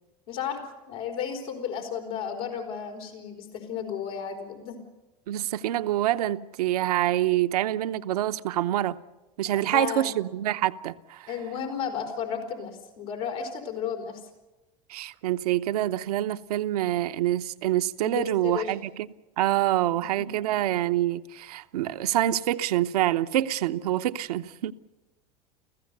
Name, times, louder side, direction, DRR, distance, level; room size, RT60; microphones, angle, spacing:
voice 1, 0.3-4.8 9.5-10.1 11.3-14.2 18.0-18.8 20.2-20.5, left 7 dB, 75° left, 4.4 m, -33 dB
voice 2, 5.3-9.0 9.4-11.3 14.9-19.1 19.4-24.7, right 13 dB, 80° right, 0.8 m, -26 dB
29.0 x 15.5 x 6.8 m
hypercardioid pair, 85°, 20 cm